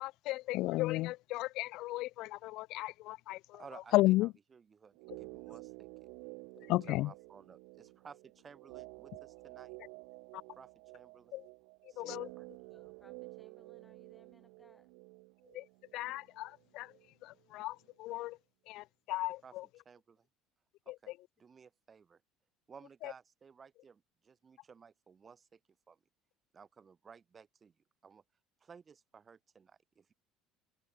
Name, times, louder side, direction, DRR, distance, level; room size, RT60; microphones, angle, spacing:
voice 1, 0.0-3.6 3.9-4.3 6.7-7.1 11.3-11.4 12.0-12.3 15.5-15.7 15.9-16.9 17.2-18.4 18.7-19.7 20.9-21.0 23.0-23.1, left 18 dB, 55° left, 0.3 m, -34 dB
voice 2, 3.5-5.9 6.6-9.8 10.5-11.4 11.9-12.5 19.4-19.6 19.8-20.3 20.9-22.2 22.7-25.6 25.9-26.0 26.5-27.7 28.0-28.2 28.6-30.1, right 6 dB, 20° right, 1.0 m, -57 dB
sound 1, 4.9-17.1 17.3-17.4, right 37 dB, 75° right, 0.4 m, -52 dB
voice 3, 12.2-14.9, left 2 dB, 10° left, 2.1 m, -67 dB
cardioid pair, 175°, 0 cm